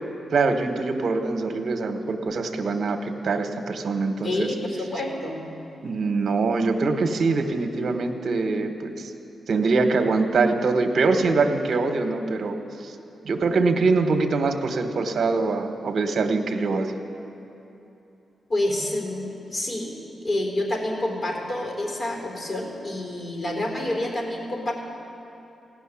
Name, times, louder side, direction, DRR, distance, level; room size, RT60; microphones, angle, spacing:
voice 1, 0.3-4.5 5.8-9.1 9.5-12.6 12.8-12.9 13.2-16.9, right 3 dB, 65° right, 6 dB, 1.2 m, -23 dB
voice 2, 4.2-5.4 18.5-19.9 20.2-24.7, left 1 dB, 50° left, 0 dB, 3.9 m, -28 dB
16.5 x 6.4 x 9.9 m, 2.9 s
cardioid pair, 75°, 0 cm